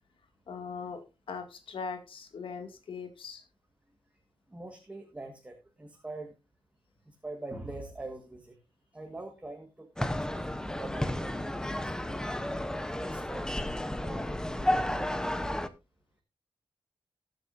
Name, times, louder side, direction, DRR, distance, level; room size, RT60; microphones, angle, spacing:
voice 1, 0.5-1.0 1.3-3.4, left 5 dB, 90° left, 7 dB, 2.1 m, -40 dB
voice 2, 4.5-6.3 7.0-8.6 8.9-10.4 10.7-13.4 13.7-15.4, right 2 dB, 15° right, 3 dB, 1.5 m, -44 dB
sound 1, 10.0-15.7, left 1 dB, 10° left, 0.7 m, -32 dB
19.5 x 7.9 x 2.5 m, 0.26 s
wide cardioid pair, 150°, 9 cm